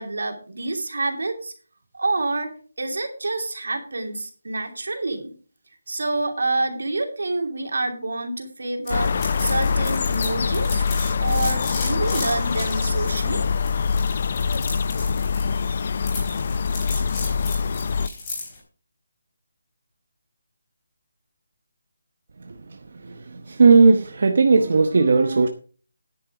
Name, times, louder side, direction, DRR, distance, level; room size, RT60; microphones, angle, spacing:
voice 1, 0.0-1.5 1.9-2.5 2.8-5.3 5.9-10.8 11.2-13.5, right 2 dB, 80° right, 2.8 m, -27 dB
sound 1, 8.9-18.1, left 5 dB, 40° left, 0.5 m, -24 dB
sound 2, 8.9-18.6, left 3 dB, 20° left, 4.1 m, -35 dB
voice 2, 23.0-25.5, right 4 dB, 50° right, 0.9 m, -17 dB
10.0 x 8.7 x 4.9 m
hypercardioid pair, 175°, 0 cm